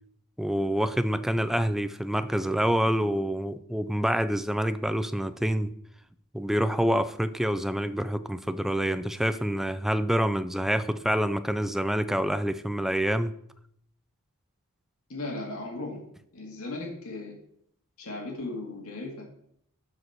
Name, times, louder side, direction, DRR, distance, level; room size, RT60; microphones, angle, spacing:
voice 1, 0.4-5.7 6.3-13.3, equal, ahead, 12 dB, 0.4 m, -27 dB
voice 2, 15.1-16.0 16.3-17.3 18.0-19.2, left 2 dB, 70° left, 0 dB, 2.2 m, -36 dB
12.5 x 4.8 x 4.6 m, 0.69 s
head